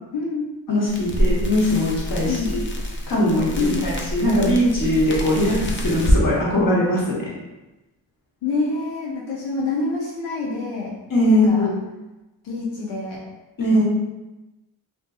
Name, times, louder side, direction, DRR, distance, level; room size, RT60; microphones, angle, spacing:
voice 1, 0.1-0.5 2.2-2.5 3.6-3.9 5.4-5.5 8.4-11.0 11.3-11.7 12.4-13.2 13.7-13.8, left 4 dB, 85° left, -4 dB, 0.6 m, -26 dB
voice 2, 0.7-2.6 3.1-7.2 11.1-11.8 13.6-13.8, left 1 dB, 45° left, -6 dB, 1.2 m, -20 dB
sound 1, 0.9-6.2, equal, 25° left, 0.5 m, -25 dB
2.5 x 2.4 x 2.4 m, 1.0 s
supercardioid pair, 45°, 46 cm